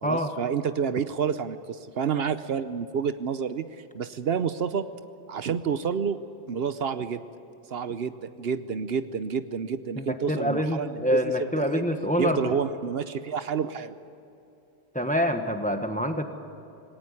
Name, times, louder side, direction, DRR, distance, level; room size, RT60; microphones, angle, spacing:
voice 1, 0.0-4.9 5.3-6.2 6.5-7.2 7.7-11.8 12.2-13.9, right 6 dB, 70° right, 12 dB, 1.0 m, -29 dB
voice 2, 10.0-12.5 14.9-16.2, equal, 5° left, 6 dB, 1.3 m, -26 dB
20.0 x 18.0 x 9.7 m, 2.8 s
omnidirectional pair, 1.1 m